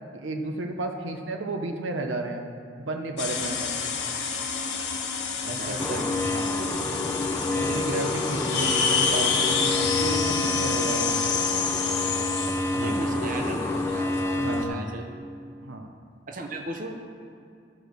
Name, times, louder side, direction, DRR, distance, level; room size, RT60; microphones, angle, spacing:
voice 1, 0.1-2.4 2.8-3.7 5.4-6.6 7.5-11.1 12.7-13.1 14.3-14.9 15.6-15.9, right 2 dB, 80° right, 4 dB, 0.8 m, -32 dB
sound 1, 3.2-14.6, left 5 dB, 60° left, 1.3 m, -29 dB
voice 2, 5.5-6.2 7.6-8.1 12.8-13.6 13.9-14.1 14.5-15.1 16.3-17.0, right 1 dB, 45° right, 3 dB, 0.9 m, -36 dB
sound 2, 5.8-14.7, left 2 dB, 15° left, 0.6 m, -28 dB
14.0 x 5.0 x 6.4 m, 2.5 s
head